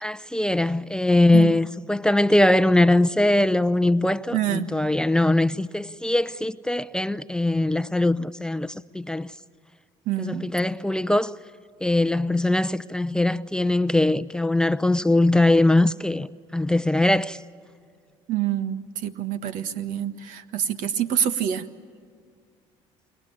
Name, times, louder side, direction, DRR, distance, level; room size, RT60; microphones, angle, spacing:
voice 1, 0.0-9.3 10.2-11.3 11.8-17.4, left 1 dB, 5° left, 0.6 m, -21 dB
voice 2, 4.3-4.7 10.1-10.5 18.3-21.7, right 10 dB, 75° right, 1.5 m, -26 dB
28.5 x 22.0 x 8.7 m
supercardioid pair, 75°, 14 cm